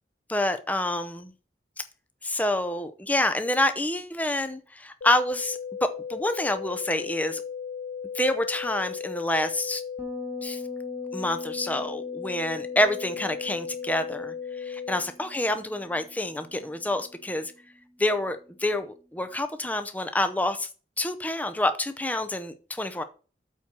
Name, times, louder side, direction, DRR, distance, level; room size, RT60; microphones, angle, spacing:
voice 1, 0.3-1.3 2.2-7.4 8.1-9.8 10.4-10.6 11.1-17.5 18.0-20.7 21.0-23.0, left 1 dB, 10° left, 9 dB, 0.6 m, -27 dB
sound 1, 5.0-15.0, left 7 dB, 75° left, 0.4 m, -36 dB
Bass guitar, 10.0-19.3, equal, 15° right, 1.4 m, -46 dB
8.3 x 4.4 x 6.1 m, 0.37 s
head